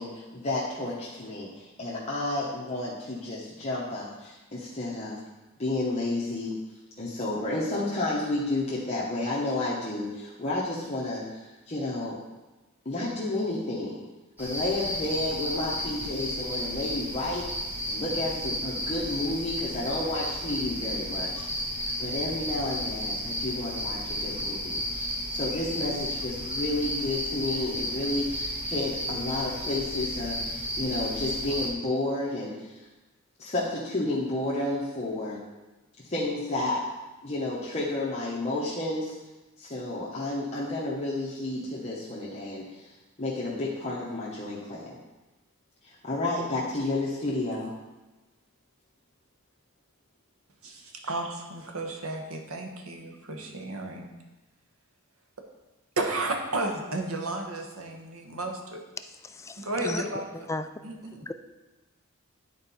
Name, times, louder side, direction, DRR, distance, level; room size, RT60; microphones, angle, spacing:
voice 1, 0.0-5.2 5.6-6.6 7.0-12.2 12.8-14.0 14.4-17.5 17.9-32.8 33.4-35.4 36.0-36.9 37.2-39.1 39.6-42.9 43.2-45.0 45.8-47.7, left 2 dB, 30° left, -7 dB, 1.1 m, -31 dB
sound 1, 14.4-31.7, equal, 10° right, 1.7 m, -33 dB
voice 2, 50.6-54.1 56.0-58.8 59.6-60.2 60.8-61.2, right 2 dB, 90° right, 3 dB, 1.1 m, -33 dB
voice 3, 59.2-60.1 60.3-60.7 61.1-61.3, left 2 dB, 15° left, 9 dB, 0.3 m, -35 dB
10.5 x 4.5 x 4.2 m, 1.1 s
head